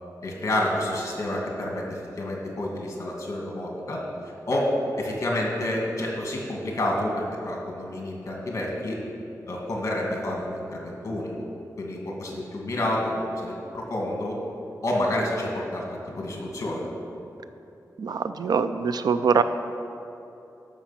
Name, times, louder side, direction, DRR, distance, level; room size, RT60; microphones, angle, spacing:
voice 1, 0.2-4.0 4.5-9.0 9.5-11.3 11.8-14.4 14.8-15.8 16.2-16.8, left 1 dB, 50° left, -2 dB, 2.2 m, -29 dB
voice 2, 18.0-19.4, right 6 dB, 85° right, 10 dB, 0.5 m, -23 dB
13.0 x 5.9 x 5.8 m, 2.8 s
wide cardioid pair, 135°, 7 cm